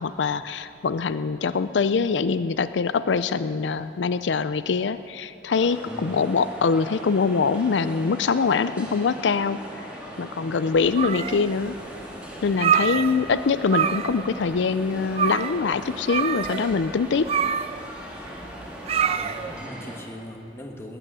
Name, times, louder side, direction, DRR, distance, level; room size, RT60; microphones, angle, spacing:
voice 1, 0.0-9.6 10.2-11.8 12.4-17.3, left 5 dB, 85° left, 13 dB, 0.4 m, -24 dB
sound 1, 5.5-20.0, equal, 5° right, 2.1 m, -39 dB
voice 2, 5.9-6.2 12.8-13.3 19.0-21.0, left 1 dB, 15° left, 1 dB, 1.3 m, -40 dB
sound 2, 10.8-11.6 12.0-12.1 12.5-13.4 13.6-14.3 14.6-14.7 15.1-15.6 16.1-19.6, right 7 dB, 35° right, 0.3 m, -26 dB
19.5 x 9.0 x 6.2 m, 2.8 s
head